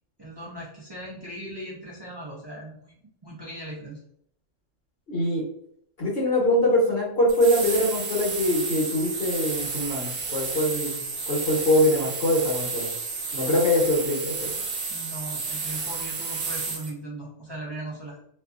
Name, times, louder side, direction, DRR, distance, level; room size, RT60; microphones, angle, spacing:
voice 1, 0.2-2.9 3.2-4.0 14.9-18.2, right 1 dB, 35° right, -6 dB, 0.4 m, -38 dB
voice 2, 5.1-5.4 6.0-12.9 13.3-14.5, left 1 dB, 55° left, -4 dB, 1.0 m, -23 dB
sound 1, 7.3-16.9, right 4 dB, 55° right, 0.8 m, -31 dB
2.7 x 2.4 x 2.3 m, 0.69 s
omnidirectional pair, 1.3 m